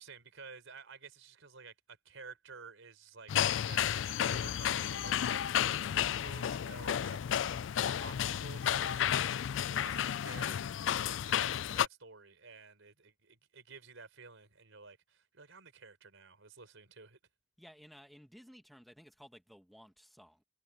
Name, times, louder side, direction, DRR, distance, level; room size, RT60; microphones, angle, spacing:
voice 1, 0.0-17.2, right 4 dB, 90° right, 4.5 m, -52 dB
sound 1, 3.3-11.9, left 9 dB, 75° left, 0.4 m, -32 dB
voice 2, 17.6-20.4, equal, ahead, 1.5 m, -56 dB
head